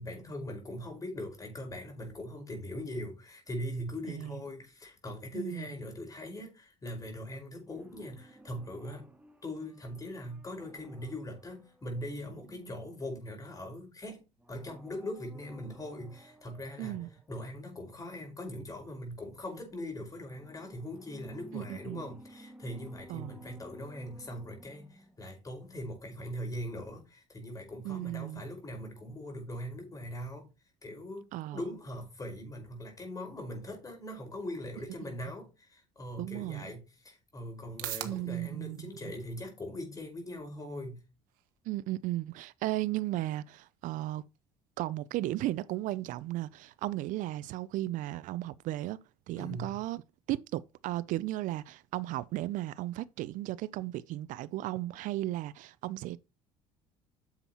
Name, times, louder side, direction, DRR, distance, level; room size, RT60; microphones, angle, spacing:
voice 1, 0.0-9.1 9.4-14.2 14.5-17.0 17.3-30.5 30.8-41.0 49.4-49.8, left 1 dB, 25° left, 5.0 m, -41 dB
voice 2, 5.3-5.7 12.6-12.7 16.8-17.1 21.5-22.0 23.1-23.4 27.8-28.4 31.3-31.6 34.8-34.9 36.2-36.7 38.0-39.1 41.7-44.2 44.8-49.0 49.3-50.0 50.3-56.2, right 16 dB, 65° right, 0.5 m, -35 dB
sound 1, 7.6-13.3 14.4-17.4 20.2-25.4 25.6-25.7, right 1 dB, 10° right, 1.6 m, -56 dB
sound 2, 36.9-53.3, right 14 dB, 80° right, 1.4 m, -52 dB
9.7 x 7.1 x 3.0 m
supercardioid pair, 90°, 14 cm